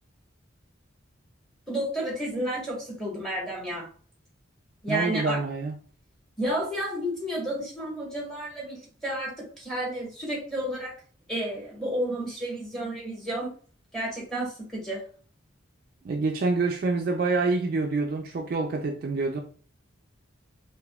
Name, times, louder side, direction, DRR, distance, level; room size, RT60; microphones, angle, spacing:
voice 1, 1.7-3.9 4.8-5.4 6.4-11.0 11.3-13.5 13.9-15.0, right 1 dB, ahead, 1.1 m, -31 dB
voice 2, 4.9-5.7 16.0-19.4, right 3 dB, 50° right, 0.3 m, -26 dB
3.5 x 2.6 x 2.2 m
head